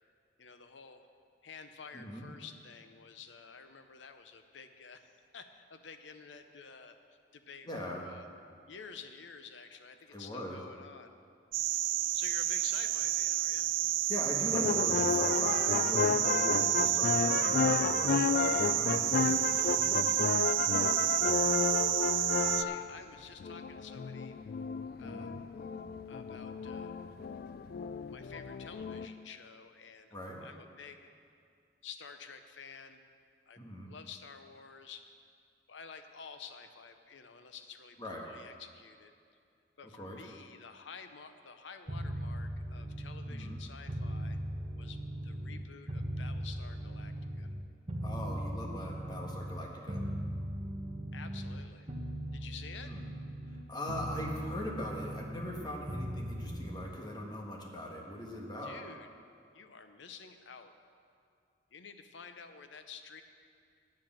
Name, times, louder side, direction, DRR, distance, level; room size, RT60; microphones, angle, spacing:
voice 1, 0.4-1.1 1.4-7.0 7.3-8.3 8.7-11.2 12.1-13.7 22.5-24.4 25.0-25.3 26.1-26.9 28.1-30.1 30.4-31.1 31.8-33.0 33.5-33.6 33.9-35.1 35.7-39.1 39.8-44.4 44.8-47.5 51.1-51.9 52.3-52.9 58.6-59.1 59.5-60.7 61.7-63.2, left 5 dB, 85° left, 8 dB, 0.7 m, -50 dB
voice 2, 1.9-2.3 7.6-8.0 10.1-10.6 14.1-19.9 25.0-25.3 30.1-30.4 33.6-33.9 38.0-38.2 39.9-40.2 43.3-43.6 48.0-50.0 52.9-53.0 53.5-58.8, left 1 dB, 25° left, 0 dB, 1.4 m, -41 dB
sound 1, 11.5-22.6, right 15 dB, 90° right, 0.3 m, -30 dB
sound 2, 14.5-22.9 23.4-29.1, left 5 dB, 55° left, 0.3 m, -32 dB
sound 3, 41.9-45.6 45.9-51.6 51.9-53.6 53.9-56.9, equal, 30° right, 1.1 m, -39 dB
9.5 x 7.6 x 7.4 m, 2.4 s
head